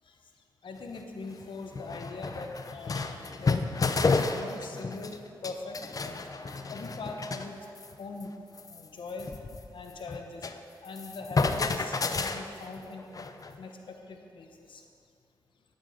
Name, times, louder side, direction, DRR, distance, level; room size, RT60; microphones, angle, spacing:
voice 1, 0.6-5.2 5.4-6.2 6.7-7.6 8.0-8.3 8.6-9.3 9.7-10.5 10.8-13.3 13.6-14.8, left 3 dB, 75° left, 3 dB, 1.3 m, -42 dB
sound 1, 0.8-0.9 1.4-1.5 1.7-5.2 5.4-7.5 7.8-7.9 8.2-8.3 8.6-10.6 10.9-13.6, left 4 dB, 45° left, 0.7 m, -31 dB
11.0 x 8.9 x 5.3 m, 2.5 s
cardioid pair, 65°, 9 cm